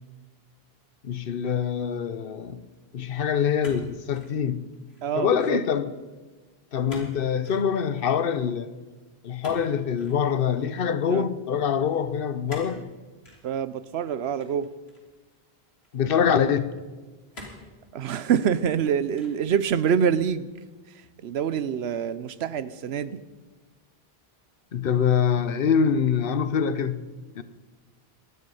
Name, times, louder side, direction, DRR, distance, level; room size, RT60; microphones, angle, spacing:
voice 1, 1.0-2.6 2.9-4.7 5.1-5.9 6.7-8.7 9.2-12.8 15.9-16.7 24.7-27.0 27.3-27.4, left 7 dB, 65° left, 1.0 m, -24 dB
sound 1, 3.6-4.4 4.7-5.2 6.9-7.2 7.4-7.7 9.4-10.2 12.5-12.8 13.2-13.4 14.4-15.1 15.8-15.9 17.3-17.7 18.3-18.8 19.1-19.5, left 1 dB, 80° left, 3.5 m, -44 dB
voice 2, 5.0-5.6 11.1-11.2 13.4-14.7 17.9-20.5 21.2-23.2, right 8 dB, 85° right, 1.0 m, -26 dB
19.0 x 12.5 x 5.5 m
omnidirectional pair, 1.0 m